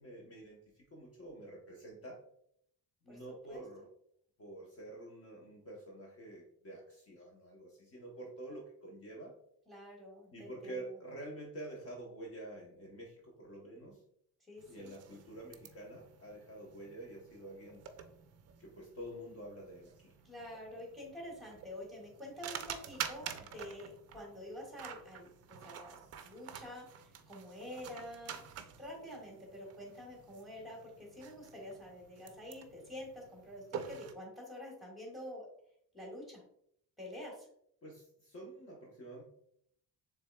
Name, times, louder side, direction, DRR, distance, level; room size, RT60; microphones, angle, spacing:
voice 1, 0.0-2.2 3.0-3.9 4.4-9.3 10.3-14.0 14.7-17.8 18.6-20.1 37.8-39.2, right 1 dB, 40° left, -1 dB, 1.0 m, -48 dB
voice 2, 9.7-10.7 14.5-14.9 20.2-25.3 25.6-26.0 26.2-28.4 28.8-35.5 35.9-36.4 37.0-37.5, left 1 dB, ahead, -2 dB, 1.7 m, -47 dB
sound 1, 14.6-34.1, right 8 dB, 45° right, 0.5 m, -49 dB
6.7 x 3.5 x 2.2 m, 0.68 s
cardioid pair, 160°, 37 cm